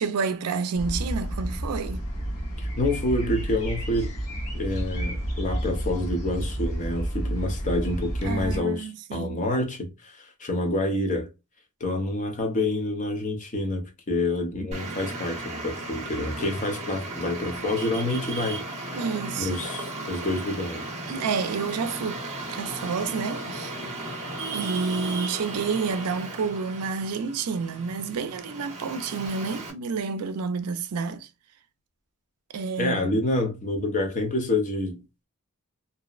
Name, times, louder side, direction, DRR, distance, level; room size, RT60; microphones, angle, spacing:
voice 1, 0.0-2.0 8.2-9.4 18.9-19.6 21.1-22.2 22.5-23.7 24.5-31.3 32.5-33.1, right 5 dB, 80° right, 0.4 m, -29 dB
sound 1, 0.7-8.6, right 1 dB, 70° left, 1.1 m, -30 dB
voice 2, 2.6-4.1 4.5-11.3 11.8-19.0 19.4-20.8 32.8-35.2, left 1 dB, 35° left, 0.7 m, -28 dB
Traffic noise roadway noise, 14.7-29.7, right 2 dB, 30° right, 0.8 m, -35 dB
2.7 x 2.0 x 2.3 m
head